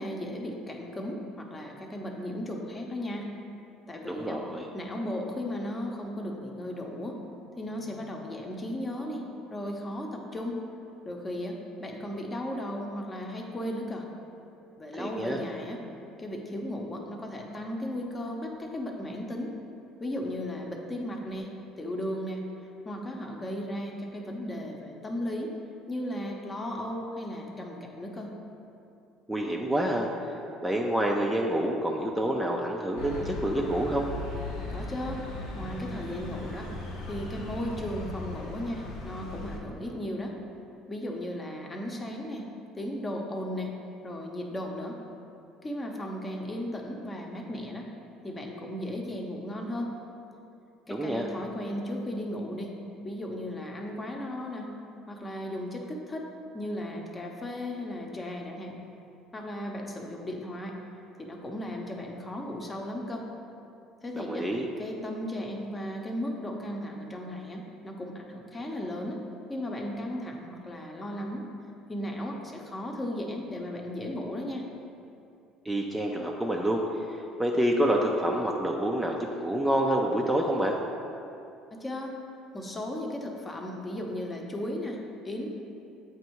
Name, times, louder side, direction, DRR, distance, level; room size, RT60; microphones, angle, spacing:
voice 1, 0.0-3.3 3.9-4.4 4.7-7.2 7.6-10.6 11.0-14.1 14.8-15.8 16.2-19.5 20.0-21.5 21.8-22.4 22.8-25.5 25.9-28.3 34.7-35.2 35.5-36.7 37.0-40.4 40.9-42.5 42.7-43.7 44.0-45.0 45.6-47.9 48.2-49.9 50.9-52.7 53.0-54.7 55.1-56.3 56.5-58.8 59.3-60.8 61.2-63.3 64.0-64.5 64.8-69.2 69.5-71.4 71.9-74.7 81.7-82.1 82.5-85.5, left 1 dB, 25° left, 0 dB, 0.8 m, -35 dB
voice 2, 4.1-4.7 14.9-15.4 29.3-30.1 30.6-34.1 50.9-51.3 64.2-64.7 75.7-76.8 77.4-80.8, right 1 dB, 10° right, 0 dB, 0.5 m, -27 dB
sound 1, 33.0-39.6, left 1 dB, 85° left, 1.0 m, -38 dB
7.9 x 2.6 x 4.5 m, 2.6 s
supercardioid pair, 80°, 0 cm